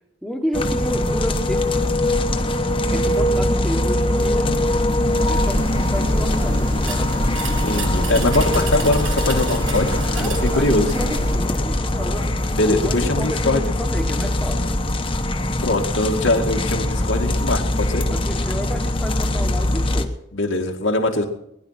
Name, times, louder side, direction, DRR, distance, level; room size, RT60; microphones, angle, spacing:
voice 1, 0.2-2.0 2.9-4.5 5.3-7.3 8.6-8.7 10.1-12.3 12.7-14.8 18.1-20.1, equal, ahead, 2 dB, 1.3 m, -30 dB
sound 1, 0.5-20.0, left 1 dB, 25° left, 1.0 m, -22 dB
sound 2, 5.2-11.4, equal, 50° right, 2.3 m, -27 dB
sound 3, 6.8-11.3, right 7 dB, 90° right, 2.0 m, -34 dB
voice 2, 7.6-10.9 12.5-13.6 15.6-18.1 20.3-21.3, left 2 dB, 90° left, 2 dB, 2.2 m, -22 dB
20.5 x 11.0 x 5.9 m, 0.81 s
head